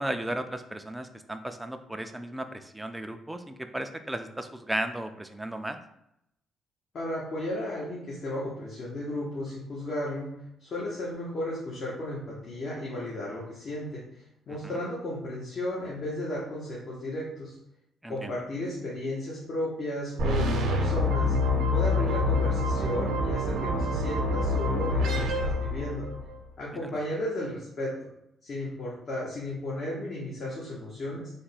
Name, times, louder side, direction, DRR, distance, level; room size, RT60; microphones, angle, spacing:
voice 1, 0.0-5.8 14.5-14.6 18.0-18.3 26.8-26.9, right 1 dB, 10° right, 7 dB, 0.4 m, -35 dB
voice 2, 6.9-14.1 14.5-17.6 18.1-21.4 21.7-26.1 26.6-28.0 28.4-31.3, left 1 dB, 55° left, -5 dB, 0.9 m, -34 dB
sound 1, 20.2-26.3, left 2 dB, 85° right, 0.7 m, -26 dB
3.4 x 2.2 x 4.1 m, 0.80 s
cardioid pair, 90°, 0 cm